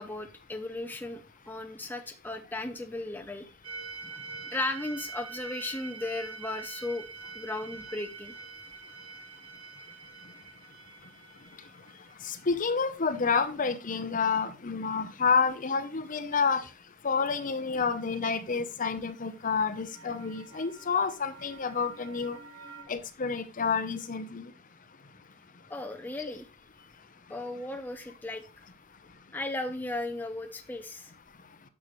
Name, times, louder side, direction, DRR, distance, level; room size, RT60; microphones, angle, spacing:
voice 1, 0.0-3.5 4.5-7.1 7.3-8.3 25.7-26.5 27.3-28.4 29.3-31.1, left 2 dB, 10° left, 0.6 m, -36 dB
sound 1, 3.6-13.2 19.3-22.8, right 4 dB, 70° right, 1.6 m, -46 dB
voice 2, 12.2-16.7 17.0-22.4 22.9-24.5, left 5 dB, 40° left, 0.8 m, -29 dB
11.0 x 6.7 x 3.1 m
head